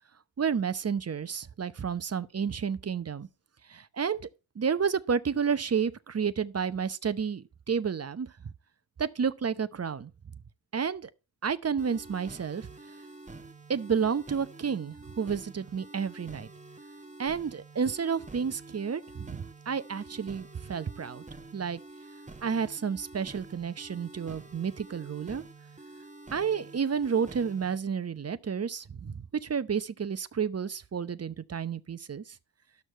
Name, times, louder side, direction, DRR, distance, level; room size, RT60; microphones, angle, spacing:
voice 1, 0.4-3.3 3.7-4.2 4.5-8.3 9.0-10.1 10.7-11.1 11.4-12.7 13.7-16.5 17.2-21.2 21.5-21.8 22.4-25.4 26.3-32.4, right 6 dB, 30° right, 0.9 m, -31 dB
sound 1, 11.8-27.8, right 2 dB, 15° right, 1.3 m, -48 dB
12.0 x 6.3 x 4.4 m
hypercardioid pair, 45°, 48 cm